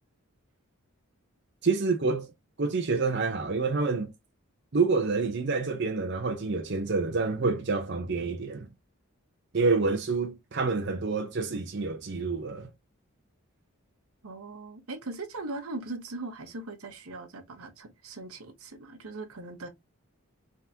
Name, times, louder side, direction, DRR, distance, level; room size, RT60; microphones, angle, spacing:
voice 1, 1.6-2.3 2.6-4.1 4.7-8.7 9.5-12.7, right 4 dB, 55° right, 0.7 m, -28 dB
voice 2, 14.2-19.7, right 2 dB, 85° right, 1.0 m, -40 dB
3.8 x 3.6 x 2.8 m
head